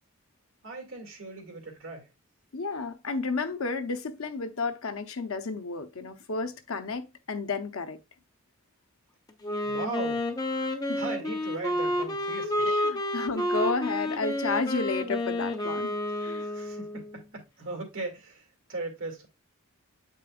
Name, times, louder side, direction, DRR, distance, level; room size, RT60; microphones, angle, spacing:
voice 1, 0.6-2.1 9.6-10.3 10.9-12.9 16.4-19.3, right 3 dB, 70° right, 2.3 m, -38 dB
voice 2, 2.5-8.0 10.9-11.0 12.6-15.9 16.2-16.4, left 4 dB, 85° left, 0.8 m, -32 dB
Wind instrument woodwind instrument, 9.4-17.2, left 1 dB, 20° left, 0.8 m, -30 dB
7.7 x 5.3 x 2.4 m
head